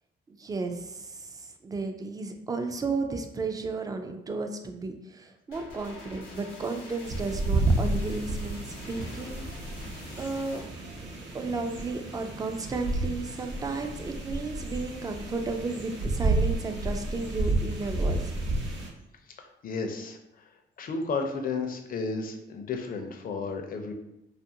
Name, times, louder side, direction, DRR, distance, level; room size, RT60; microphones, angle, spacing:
voice 1, 0.4-9.4 10.2-10.6 11.3-18.3, right 3 dB, 20° right, 5 dB, 0.3 m, -33 dB
sound 1, 5.5-10.6, left 3 dB, 90° left, 0.8 m, -46 dB
sound 2, 7.0-18.9, right 2 dB, 65° right, 0.7 m, -31 dB
voice 2, 19.6-20.2 20.8-23.9, left 4 dB, 45° left, 4 dB, 0.5 m, -32 dB
2.5 x 2.4 x 2.7 m, 0.88 s
cardioid pair, 90°, 20 cm